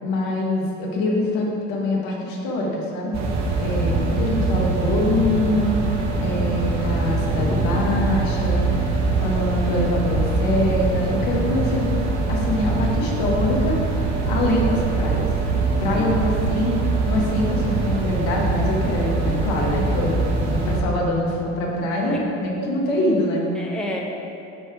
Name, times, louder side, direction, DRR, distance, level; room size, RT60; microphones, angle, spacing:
voice 1, 0.0-3.2 3.6-8.9 9.2-11.9 12.3-13.8 14.3-15.3 15.8-20.2 20.4-23.4, left 1 dB, 70° left, -2 dB, 1.4 m, -24 dB
sound 1, 3.1-20.8, right 3 dB, 50° right, 1.1 m, -23 dB
voice 2, 15.9-16.4 22.1-22.3 23.5-24.0, left 1 dB, ahead, -1 dB, 0.8 m, -35 dB
9.6 x 3.2 x 4.6 m, 2.8 s
hypercardioid pair, 75°, 36 cm